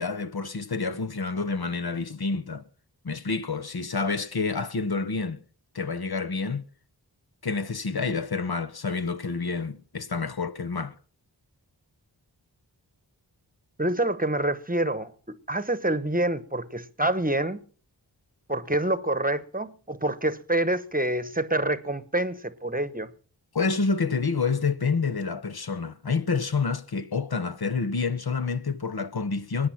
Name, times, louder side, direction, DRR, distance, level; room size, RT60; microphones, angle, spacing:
voice 1, 0.0-2.6 3.0-5.4 5.7-6.6 7.4-10.9 23.5-29.7, left 4 dB, 55° left, 1.0 m, -28 dB
voice 2, 13.8-17.6 18.5-23.1, right 1 dB, 20° right, 1.1 m, -27 dB
20.5 x 9.7 x 5.8 m
wide cardioid pair, 45°, 43 cm